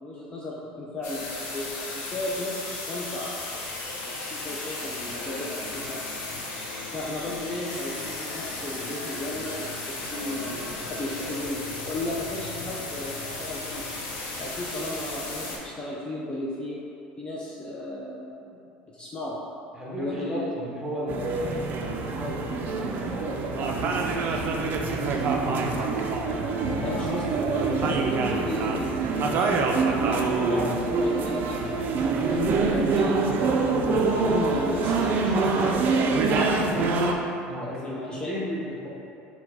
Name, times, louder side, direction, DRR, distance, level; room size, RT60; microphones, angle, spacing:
voice 1, 0.0-3.7 4.1-6.0 6.9-13.9 14.4-16.8 17.2-18.6 18.9-19.4 20.0-20.5 26.8-31.6 32.3-33.2 34.0-37.1 37.6-38.3, left 1 dB, 20° left, -5 dB, 0.5 m, -35 dB
sound 1, 1.0-15.6, left 2 dB, 65° left, 0.8 m, -35 dB
voice 2, 19.7-25.9 26.6-27.0 27.4-27.6 37.5-38.9, equal, 5° right, -5 dB, 1.1 m, -35 dB
sound 2, 21.1-37.1, right 4 dB, 50° right, 0.4 m, -25 dB
4.2 x 2.3 x 4.1 m, 2.7 s
supercardioid pair, 90°, 4 cm